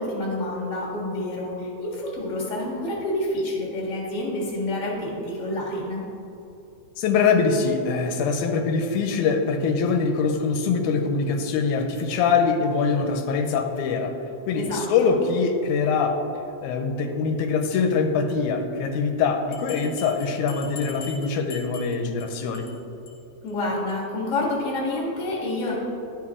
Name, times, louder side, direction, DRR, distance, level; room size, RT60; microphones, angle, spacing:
voice 1, 0.0-6.0 14.5-15.1 23.4-25.7, left 1 dB, 35° left, -4 dB, 1.4 m, -28 dB
voice 2, 7.0-14.1 14.5-16.2 16.6-22.7, left 5 dB, 85° left, 4 dB, 2.0 m, -23 dB
Bell, 19.5-22.3 22.5-22.8 23.1-23.2 23.5-23.6 23.9-24.0, left 3 dB, 50° left, 1.6 m, -42 dB
11.5 x 4.5 x 3.6 m, 2.9 s
omnidirectional pair, 3.4 m